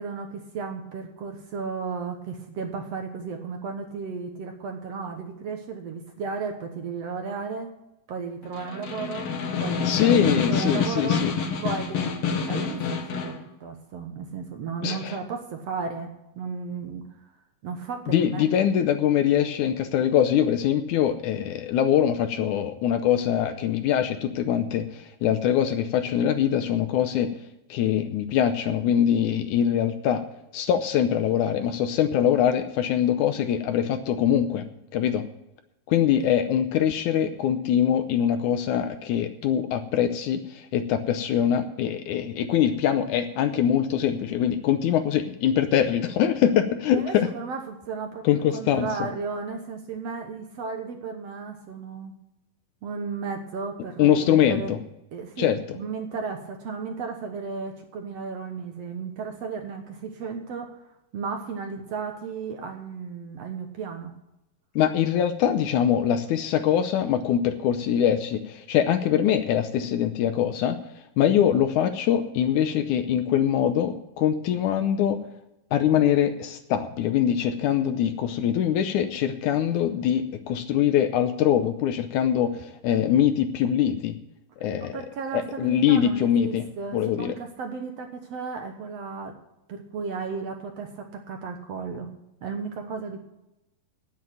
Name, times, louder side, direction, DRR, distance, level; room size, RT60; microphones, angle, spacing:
voice 1, 0.0-7.7 8.1-11.3 11.6-12.1 12.4-17.1 17.6-18.5 36.2-36.3 46.9-48.3 48.5-52.1 52.8-54.7 55.1-60.7 61.1-64.1 84.8-89.4 89.7-92.1 92.4-93.2, right 5 dB, 60° right, 4 dB, 1.9 m, -34 dB
Snare drum, 8.4-13.4, left 5 dB, 55° left, 2.0 m, -27 dB
voice 2, 9.9-11.3 14.8-15.2 18.1-27.3 27.7-30.2 30.5-34.6 34.9-35.2 35.9-47.3 48.2-49.1 54.0-54.8 55.4-55.6 64.8-70.8 71.2-75.2 75.7-84.1 84.6-85.0 85.3-86.6 86.9-87.3, left 9 dB, 75° left, 9 dB, 2.0 m, -23 dB
9.4 x 8.5 x 8.9 m, 0.91 s
omnidirectional pair, 3.9 m